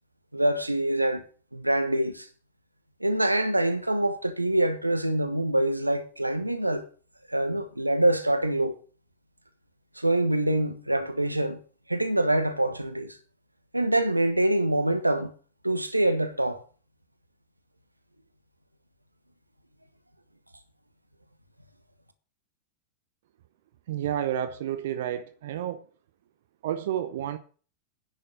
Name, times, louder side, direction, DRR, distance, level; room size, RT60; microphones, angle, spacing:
voice 1, 0.3-1.2 1.5-2.3 3.0-6.8 7.3-8.8 9.9-11.6 11.9-13.2 13.7-15.3 15.6-16.6, right 1 dB, 85° right, 1.3 m, -25 dB
voice 2, 23.9-25.8 26.6-27.4, right 10 dB, 55° right, 0.8 m, -30 dB
10.5 x 6.5 x 9.0 m
figure-of-eight pair, 90°, 0 cm